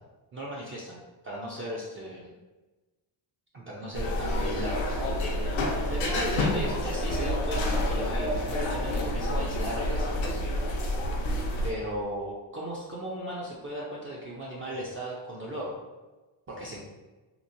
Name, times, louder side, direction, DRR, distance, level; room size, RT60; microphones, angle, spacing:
voice 1, 0.3-2.3 3.5-5.0 5.9-10.5 11.6-15.7 16.5-16.9, equal, 30° right, -5 dB, 0.4 m, -36 dB
sound 1, 3.9-11.7, left 1 dB, 90° left, 0.7 m, -28 dB
2.9 x 2.0 x 2.5 m, 1.2 s
cardioid pair, 120°, 47 cm